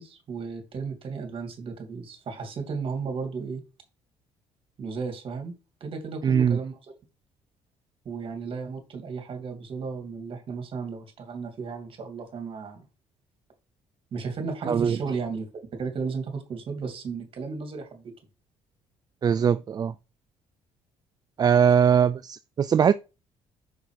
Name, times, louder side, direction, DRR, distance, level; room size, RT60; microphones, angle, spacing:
voice 1, 0.0-3.6 4.8-5.5 5.8-6.9 8.0-12.8 14.1-18.1, right 5 dB, 50° right, 2.7 m, -34 dB
voice 2, 6.2-6.6 14.7-15.0 19.2-19.9 21.4-22.9, right 7 dB, 35° right, 0.3 m, -21 dB
6.2 x 5.5 x 5.0 m
cardioid pair, 90°, 12 cm